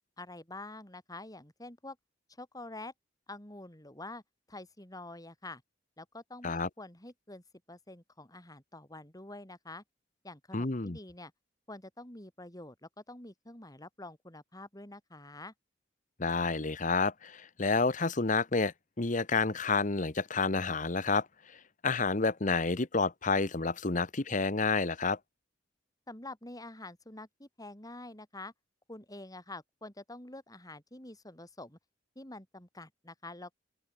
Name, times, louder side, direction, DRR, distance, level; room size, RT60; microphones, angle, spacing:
voice 1, 0.2-2.0 2.4-2.9 3.3-4.2 4.5-5.6 6.0-7.4 7.7-9.8 10.2-11.3 11.7-15.5 26.1-28.5 28.9-31.8 32.1-33.5, left 2 dB, 20° left, 4.9 m, -47 dB
voice 2, 10.5-11.0 16.2-21.3 21.8-25.2, left 4 dB, 45° left, 1.3 m, -29 dB
open air
head